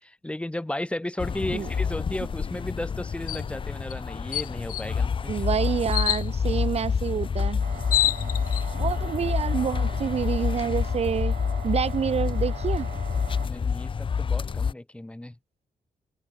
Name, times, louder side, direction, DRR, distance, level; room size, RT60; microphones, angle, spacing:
voice 1, 0.0-5.4 13.4-15.4, left 1 dB, 10° left, 3.2 m, -34 dB
sound 1, 1.2-14.7, left 6 dB, 35° left, 1.0 m, -28 dB
sound 2, 3.3-3.5 3.9-4.0 4.3-4.8 5.9-6.2 7.4-7.5 7.7-8.6, left 14 dB, 85° left, 0.5 m, -26 dB
voice 2, 5.3-7.6 8.8-11.3 11.6-12.9, right 7 dB, 45° right, 1.3 m, -28 dB
sound 3, 7.6-13.5, right 10 dB, 70° right, 3.9 m, -42 dB
open air
cardioid pair, 110°, 14 cm